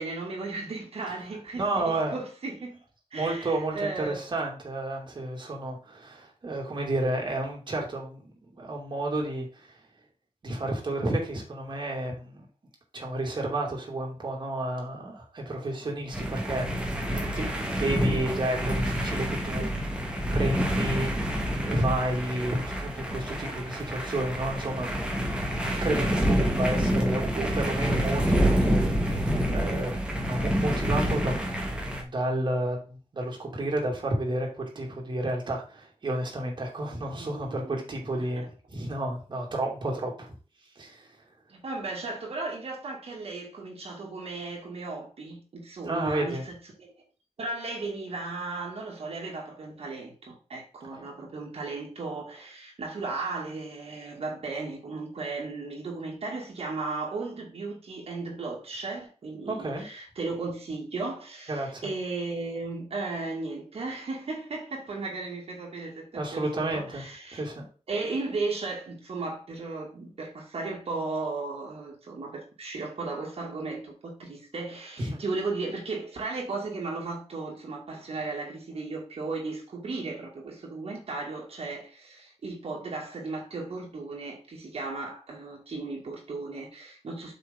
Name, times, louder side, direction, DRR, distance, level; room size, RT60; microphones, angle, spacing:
voice 1, 0.0-2.8 3.1-4.2 17.1-18.3 37.1-37.8 38.1-38.5 41.5-46.9 47.4-67.5 67.9-87.3, right 3 dB, 65° right, 2.4 m, -35 dB
voice 2, 1.6-2.2 3.1-9.8 10.4-12.5 12.9-16.7 17.3-17.5 17.8-20.0 20.3-24.9 25.8-31.4 31.8-40.3 40.7-41.2 45.8-46.4 59.5-59.9 61.5-61.9 66.1-67.0 67.3-67.7 75.0-75.2, right 1 dB, 45° right, 2.5 m, -31 dB
sound 1, 16.1-32.0, equal, 10° right, 1.8 m, -27 dB
7.8 x 5.6 x 3.8 m
wide cardioid pair, 140°, 11 cm